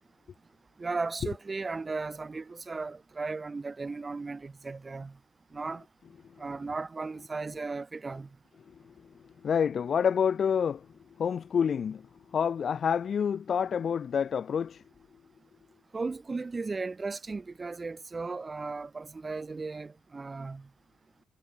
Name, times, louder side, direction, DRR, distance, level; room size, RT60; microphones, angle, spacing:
voice 1, 0.8-5.1 5.5-5.8 6.4-8.3 15.9-20.7, right 3 dB, 25° right, 3.4 m, -36 dB
voice 2, 9.4-10.9 11.2-12.0 12.3-14.8, left 7 dB, 50° left, 1.5 m, -27 dB
cardioid pair, 90°, 0 cm